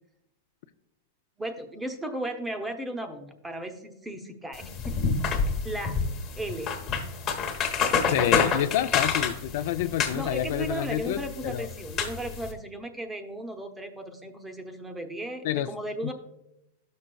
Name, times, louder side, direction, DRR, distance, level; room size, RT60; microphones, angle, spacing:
voice 1, 1.4-5.0 5.6-6.0 6.3-6.7 8.9-9.0 10.1-16.1, right 1 dB, 10° right, 7 dB, 0.7 m, -35 dB
sound 1, 4.5-12.5, left 5 dB, 30° left, 1.1 m, -28 dB
voice 2, 8.1-11.7 15.4-15.7 16.0-16.1, left 12 dB, 65° left, 11 dB, 0.4 m, -28 dB
12.0 x 6.4 x 2.3 m, 0.87 s
supercardioid pair, 145°, 0 cm